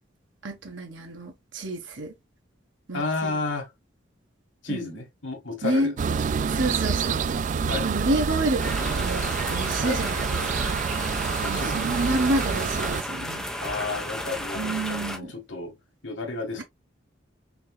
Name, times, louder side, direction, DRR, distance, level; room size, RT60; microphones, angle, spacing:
voice 1, 0.4-2.1 2.9-3.4 4.7-5.0 5.6-5.9 6.4-7.2 7.8-10.8 11.1-13.4 14.5-15.3, right 2 dB, 75° right, 1.2 m, -29 dB
voice 2, 2.9-3.7 4.6-5.9 7.7-7.9 9.8-10.0 11.4-12.1 13.6-15.7 16.0-16.6, left 3 dB, 75° left, 1.7 m, -32 dB
sound 1, 6.0-13.0, right 6 dB, 40° right, 0.3 m, -27 dB
sound 2, 8.6-15.2, left 1 dB, 5° left, 0.9 m, -33 dB
5.7 x 3.0 x 2.2 m
head